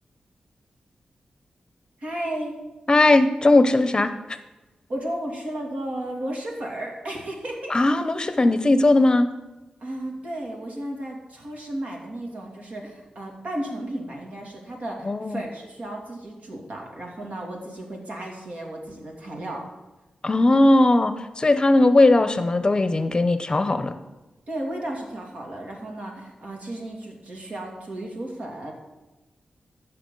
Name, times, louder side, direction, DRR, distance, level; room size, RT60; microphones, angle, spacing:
voice 1, 2.0-2.6 3.6-3.7 4.9-7.8 9.8-19.7 24.5-28.7, right 1 dB, 65° right, 0 dB, 2.4 m, -34 dB
voice 2, 2.9-4.1 7.7-9.3 15.1-15.4 20.2-23.9, left 2 dB, 35° left, 11 dB, 0.7 m, -18 dB
14.5 x 5.9 x 3.9 m, 1.1 s
cardioid pair, 60°, 3 cm